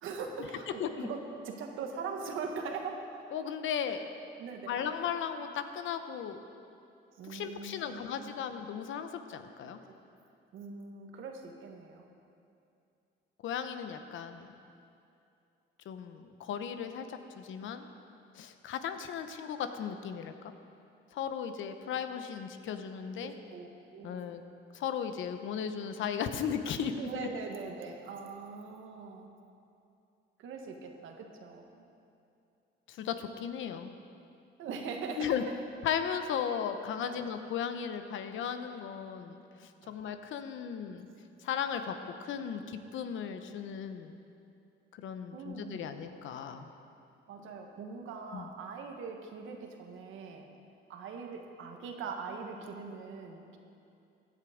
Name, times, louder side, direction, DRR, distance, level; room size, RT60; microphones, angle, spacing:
voice 1, 0.0-3.1 4.4-4.7 7.2-8.3 9.6-9.7 10.5-12.1 23.2-24.4 27.0-29.3 30.4-31.8 34.6-35.4 37.0-37.2 39.8-40.0 45.3-45.9 47.3-50.5 50.9-53.6, right 5 dB, 80° right, 3 dB, 1.6 m, -41 dB
voice 2, 0.8-1.1 3.3-4.1 4.7-6.4 7.3-9.8 13.4-14.5 15.9-17.9 18.3-20.3 21.1-23.3 24.0-24.4 24.7-27.3 32.9-33.9 35.2-35.4 35.8-41.1 41.4-41.9 42.2-44.2 45.0-46.7 48.3-48.5, left 8 dB, 75° left, 8 dB, 0.9 m, -36 dB
16.5 x 10.5 x 5.1 m, 2.6 s
cardioid pair, 90°, 20 cm